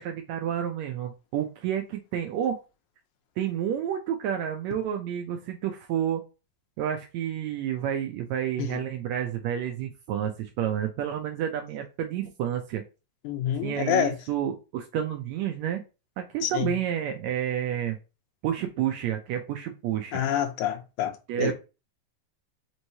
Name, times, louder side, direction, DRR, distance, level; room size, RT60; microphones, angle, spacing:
voice 1, 0.0-2.6 3.4-6.2 6.8-12.8 13.6-15.8 16.2-18.0 18.4-20.2 21.3-21.5, right 10 dB, 80° right, 1.8 m, -30 dB
voice 2, 13.2-14.1 16.4-16.7 20.1-21.1 21.4-21.5, left 10 dB, 85° left, 2.1 m, -27 dB
5.3 x 3.1 x 2.7 m
omnidirectional pair, 3.4 m